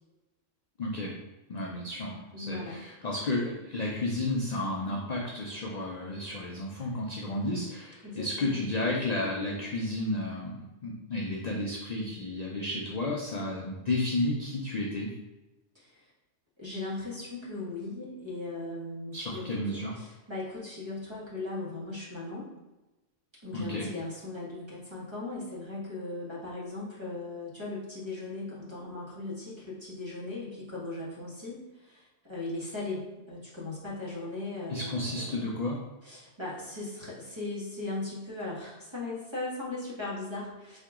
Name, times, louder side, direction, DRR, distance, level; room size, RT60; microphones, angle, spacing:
voice 1, 0.8-1.2 1.5-15.1 19.1-20.0 23.5-23.9 34.7-35.8, left 2 dB, 50° left, -2 dB, 0.5 m, -32 dB
voice 2, 2.3-2.8 8.0-8.6 15.7-16.1 16.6-22.5 23.4-35.5 36.0-40.8, left 2 dB, 25° right, -7 dB, 1.3 m, -38 dB
4.5 x 2.8 x 3.5 m, 1.1 s
omnidirectional pair, 1.2 m